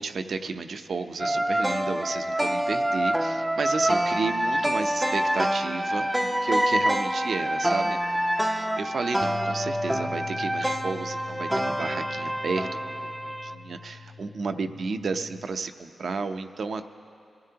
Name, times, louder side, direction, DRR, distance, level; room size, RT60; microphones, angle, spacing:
voice 1, 0.0-8.0 8.4-16.9, right 4 dB, 70° right, 8 dB, 0.6 m, -32 dB
sound 1, 1.2-13.6, equal, 10° right, 0.5 m, -26 dB
sound 2, 9.2-15.5, left 5 dB, 45° left, 0.4 m, -42 dB
23.0 x 15.0 x 2.9 m, 2.6 s
cardioid pair, 50°, 0 cm